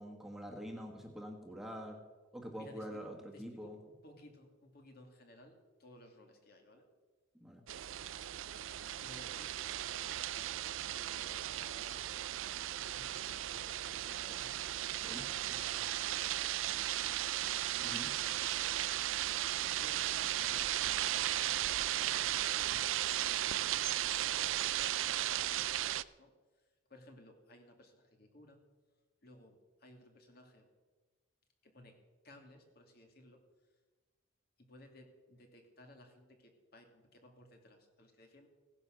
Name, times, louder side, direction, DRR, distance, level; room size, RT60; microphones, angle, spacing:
voice 1, 0.0-2.0 2.3-3.8 7.4-7.6 15.0-15.2 17.8-18.2, equal, ahead, 1 dB, 1.6 m, -45 dB
voice 2, 2.6-6.9 9.0-12.1 12.5-14.8 15.1-16.2 16.6-17.4 18.2-18.9 19.2-21.5 21.9-22.9 23.2-26.3 26.6-28.6 29.2-30.7 31.6-32.0 32.2-33.4 34.6-38.5, left 1 dB, 55° left, 3 dB, 2.5 m, -59 dB
sound 1, 7.7-26.0, right 13 dB, 90° right, 0.4 m, -36 dB
17.0 x 10.5 x 6.3 m, 1.3 s
head